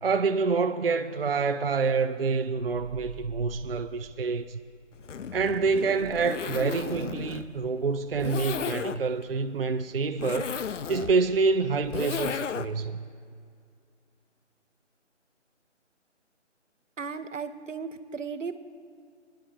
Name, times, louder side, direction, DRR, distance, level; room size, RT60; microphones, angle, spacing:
voice 1, 0.0-4.6 5.3-10.5 10.9-13.0, right 4 dB, 50° right, 0.5 m, -27 dB
sound 1, 2.3-4.9, right 6 dB, 20° right, 1.3 m, -46 dB
Zipper (clothing), 5.0-12.9, left 7 dB, 75° left, 0.6 m, -35 dB
voice 2, 17.0-18.6, right 5 dB, 80° right, 0.9 m, -35 dB
28.0 x 10.0 x 2.7 m
figure-of-eight pair, 165°, 37 cm